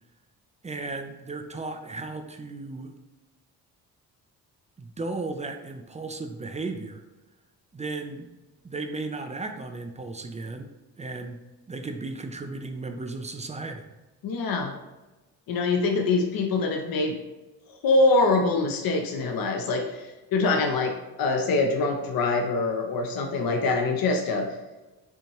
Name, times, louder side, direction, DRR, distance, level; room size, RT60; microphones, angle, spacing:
voice 1, 0.6-2.9 4.8-7.0 7.7-8.3 8.6-10.7 11.0-11.4 11.7-13.8, right 3 dB, 15° right, 5 dB, 0.3 m, -35 dB
voice 2, 14.2-14.7 15.5-17.2 17.8-24.5, left 3 dB, 50° left, 3 dB, 0.7 m, -24 dB
4.5 x 2.5 x 2.9 m, 1.1 s
hypercardioid pair, 45°, 47 cm